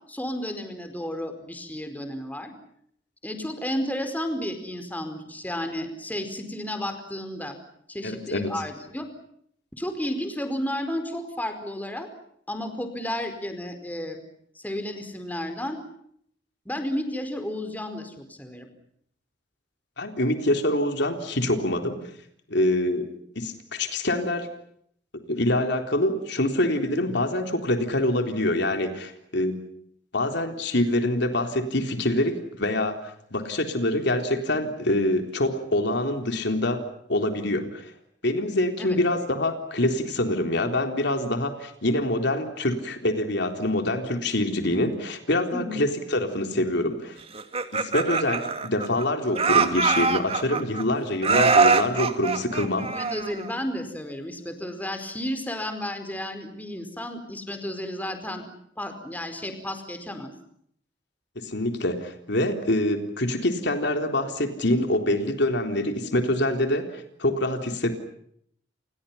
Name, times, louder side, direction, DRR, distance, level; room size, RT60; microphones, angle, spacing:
voice 1, 0.1-2.5 3.2-7.6 7.9-9.1 9.7-12.1 12.5-14.2 14.5-15.8 16.6-18.7 38.8-39.0 45.5-45.8 52.9-58.4 58.8-60.3, left 1 dB, 10° left, 7 dB, 4.7 m, -32 dB
voice 2, 8.0-8.5 20.0-22.0 22.5-23.1 23.4-24.5 25.3-29.6 30.1-37.9 38.2-47.2 47.7-52.9 61.4-67.9, left 1 dB, 65° left, 5 dB, 3.8 m, -25 dB
Laughter, 47.3-49.0 49.3-50.8 51.2-53.5, right 4 dB, 35° right, 2.3 m, -23 dB
30.0 x 29.0 x 5.7 m, 0.69 s
head